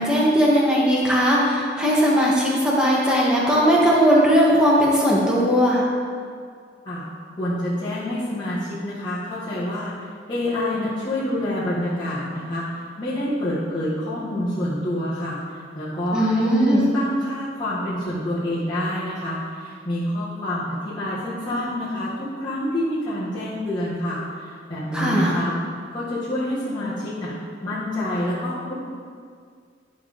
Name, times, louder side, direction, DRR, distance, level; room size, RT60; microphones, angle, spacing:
voice 1, 0.0-5.8 16.1-16.8 24.9-25.4, equal, 5° right, -5 dB, 1.5 m, -18 dB
voice 2, 7.4-12.7 13.0-15.4 15.7-25.6 25.9-27.3 27.6-28.7, left 1 dB, 25° left, -13 dB, 1.7 m, -27 dB
11.0 x 5.3 x 3.7 m, 2.1 s
head